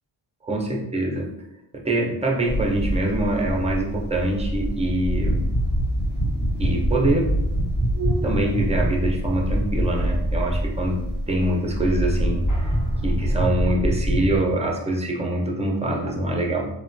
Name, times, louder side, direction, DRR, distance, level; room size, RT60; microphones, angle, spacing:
voice 1, 0.4-1.3 1.8-5.4 6.6-7.3 8.2-11.0 11.3-12.4 13.0-16.7, right 1 dB, 15° right, -1 dB, 0.5 m, -24 dB
sound 1, 2.4-13.5, right 3 dB, 60° right, 0.5 m, -43 dB
sound 2, 2.5-14.4, equal, 45° left, 1.0 m, -24 dB
3.1 x 2.2 x 2.5 m, 0.86 s
wide cardioid pair, 95°, 46 cm